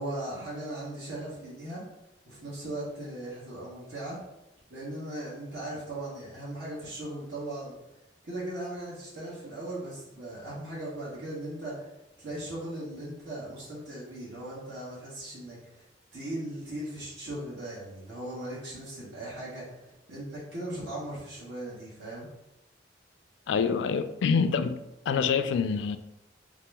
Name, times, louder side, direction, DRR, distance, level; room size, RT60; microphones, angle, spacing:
voice 1, 0.0-1.8 2.3-4.2 4.7-7.8 8.2-11.9 12.2-15.9 16.1-19.8 20.1-22.3, right 1 dB, 75° right, 1.4 m, -38 dB
voice 2, 23.5-26.0, left 6 dB, 80° left, 0.3 m, -26 dB
3.6 x 2.9 x 3.4 m
head